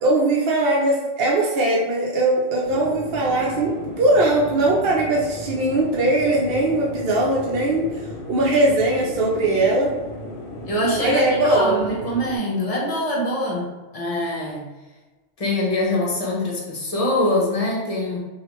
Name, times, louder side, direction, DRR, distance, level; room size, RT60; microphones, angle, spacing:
voice 1, 0.0-7.9 8.3-9.9 11.0-11.8, right 2 dB, 60° right, -4 dB, 0.7 m, -20 dB
sound 1, 2.6-12.4, left 1 dB, 75° left, 0.9 m, -35 dB
voice 2, 10.6-13.7 13.9-14.7 15.4-18.2, left 1 dB, 40° left, -3 dB, 0.6 m, -24 dB
3.2 x 2.4 x 3.0 m, 1.2 s
omnidirectional pair, 1.2 m